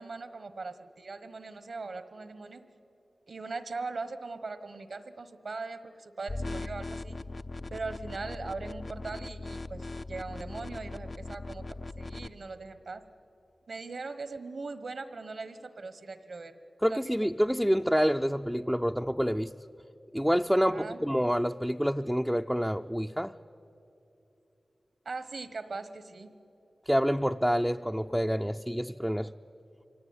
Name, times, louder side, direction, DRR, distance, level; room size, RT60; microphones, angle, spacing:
voice 1, 0.0-2.6 3.3-7.2 7.7-13.0 13.7-17.3 20.7-21.0 25.0-26.3, right 3 dB, 75° right, 12 dB, 1.2 m, -40 dB
sound 1, 6.3-12.3, left 2 dB, 50° left, 0.5 m, -39 dB
voice 2, 16.8-19.5 20.1-23.3 26.9-29.3, equal, ahead, 4 dB, 0.5 m, -27 dB
24.5 x 18.0 x 9.6 m, 2.9 s
cardioid pair, 45°, 0 cm